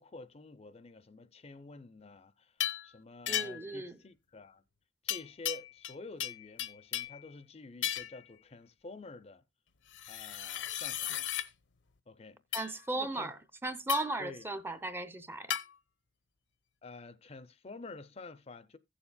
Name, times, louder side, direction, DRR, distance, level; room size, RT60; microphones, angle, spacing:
voice 1, 0.0-4.6 5.0-9.4 10.1-11.2 12.1-12.4 12.9-13.3 14.2-14.5 16.8-18.8, left 2 dB, 35° left, 0.5 m, -49 dB
sound 1, 2.6-2.9 3.3-3.7 5.1-5.9 6.2-7.2 7.8-8.2 9.9-11.5 12.5-12.7 13.9-14.2 15.5-15.7, left 12 dB, 70° left, 0.8 m, -35 dB
voice 2, 3.3-4.0 12.5-13.4 13.6-15.6, right 2 dB, 10° right, 0.6 m, -36 dB
16.0 x 7.1 x 2.2 m
head